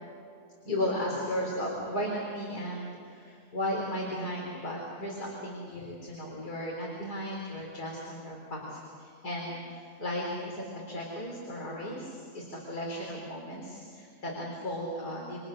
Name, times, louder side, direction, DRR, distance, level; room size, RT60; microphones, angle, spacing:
voice 1, 0.6-15.4, left 1 dB, 75° left, -2 dB, 4.6 m, -35 dB
29.5 x 26.0 x 6.5 m, 2.5 s
omnidirectional pair, 1.7 m